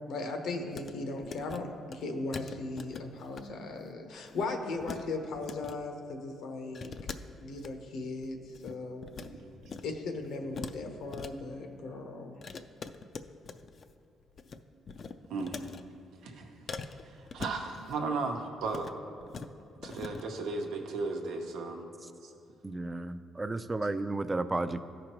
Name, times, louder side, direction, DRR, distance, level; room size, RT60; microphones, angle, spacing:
voice 1, 0.1-6.9 7.4-8.4 8.6-9.1 9.8-12.3, left 3 dB, 80° left, 0.9 m, -37 dB
sound 1, 0.7-0.9 1.2-1.6 1.9-2.0 2.3-3.4 3.7-3.9 4.2-5.0 5.3-5.8 6.7-7.7 8.2-9.3 9.6-9.9 10.2-11.3 12.4-13.9 14.2-14.6 14.9-15.8 16.7-18.0 18.6-18.9 19.2-19.5 19.8-20.2, left 5 dB, 50° left, 0.4 m, -43 dB
voice 2, 15.3-15.6 16.2-16.5 17.1-18.9 19.8-21.8 22.2-22.3, right 3 dB, 85° right, 0.9 m, -35 dB
voice 3, 22.6-24.8, right 2 dB, 20° right, 0.4 m, -33 dB
14.0 x 5.0 x 3.0 m
cardioid pair, 90°, 0 cm